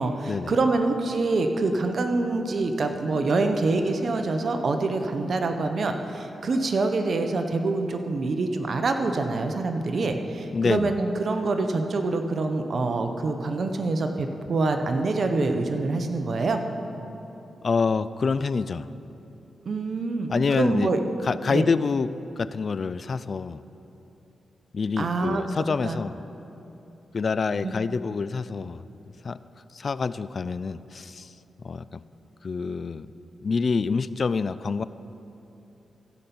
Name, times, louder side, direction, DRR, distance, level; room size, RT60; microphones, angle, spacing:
voice 1, 0.0-16.6 19.6-21.0 21.5-21.6 25.0-25.4 25.8-26.0 27.6-27.7, right 3 dB, 60° right, 6 dB, 0.9 m, -25 dB
voice 2, 10.5-11.0 17.6-18.9 20.3-20.9 21.2-23.6 24.7-26.2 27.1-28.9 29.2-29.4 29.7-31.3 31.6-32.0 32.4-33.1 33.4-34.8, left 4 dB, 55° left, 15 dB, 0.4 m, -27 dB
15.0 x 5.9 x 7.0 m, 2.9 s
cardioid pair, 65°, 0 cm